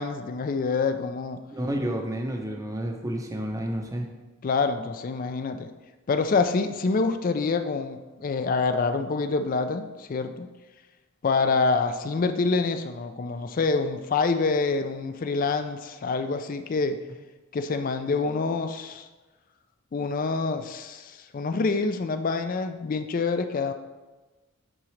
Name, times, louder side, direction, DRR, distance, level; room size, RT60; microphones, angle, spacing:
voice 1, 0.0-1.4 4.4-5.7 6.1-10.5 11.2-17.0 17.5-19.1 19.9-23.7, left 4 dB, 40° left, 9 dB, 0.3 m, -26 dB
voice 2, 1.5-4.1, right 1 dB, 15° right, 3 dB, 0.6 m, -30 dB
8.8 x 3.7 x 3.2 m, 1.2 s
head